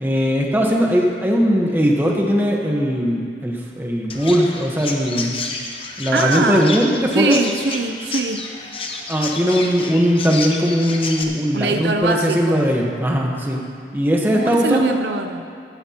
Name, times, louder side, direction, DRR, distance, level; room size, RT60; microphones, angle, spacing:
voice 1, 0.0-5.4 6.0-7.4 9.1-13.6 13.9-15.0, equal, 10° right, -1 dB, 1.1 m, -19 dB
Chirp tweet, 4.1-11.2, left 3 dB, 30° left, 0.9 m, -30 dB
voice 2, 6.1-6.8 7.1-8.5 11.5-12.7 14.3-15.5, right 3 dB, 75° right, 5 dB, 0.6 m, -22 dB
15.5 x 13.0 x 2.9 m, 2.3 s
head